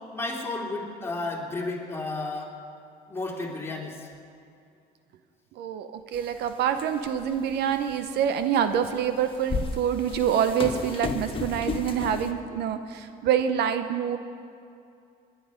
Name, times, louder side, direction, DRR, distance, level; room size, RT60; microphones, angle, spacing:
voice 1, 0.1-2.5 3.1-4.1, left 2 dB, 15° left, -2 dB, 2.7 m, -32 dB
voice 2, 5.6-14.2, right 8 dB, 75° right, 9 dB, 0.8 m, -26 dB
sound 1, 6.2-6.3 6.7-7.2 7.9-8.0 9.0-12.3, left 4 dB, 30° left, 1.1 m, -33 dB
21.0 x 10.5 x 5.1 m, 2.5 s
cardioid pair, 110°, 17 cm